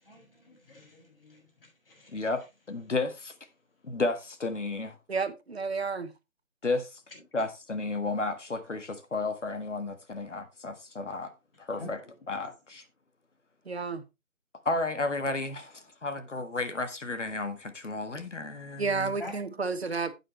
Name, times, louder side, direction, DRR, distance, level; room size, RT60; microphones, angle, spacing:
voice 1, 0.0-2.1 11.7-11.9 19.2-19.4, left 1 dB, 45° left, 6.5 m, -46 dB
voice 2, 2.7-3.3 3.8-5.0 6.6-7.0 7.3-11.3 11.6-12.0 12.3-12.8 14.7-19.2, left 3 dB, 60° left, 1.7 m, -32 dB
voice 3, 5.1-6.1 13.7-14.0 18.8-20.1, right 4 dB, 50° right, 1.2 m, -31 dB
11.0 x 8.9 x 3.1 m
figure-of-eight pair, 165°, 40 cm